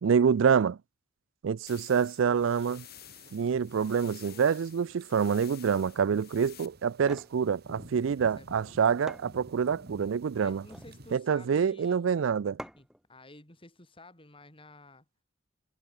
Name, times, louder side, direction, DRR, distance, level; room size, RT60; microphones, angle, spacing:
voice 1, 0.0-0.8 1.4-2.8 3.3-10.6 11.1-12.6, right 6 dB, 70° right, 0.4 m, -26 dB
sound 1, 1.7-6.7, left 13 dB, 50° left, 2.2 m, -52 dB
sound 2, 2.3-11.2, right 1 dB, 55° right, 4.0 m, -53 dB
voice 2, 3.8-4.5 8.2-8.7 10.4-12.0 12.6-15.0, left 2 dB, 25° left, 6.8 m, -53 dB
sound 3, 7.0-7.4 8.6-8.7 9.1-9.9 10.5-11.0 12.6-13.0, equal, 5° right, 0.8 m, -45 dB
head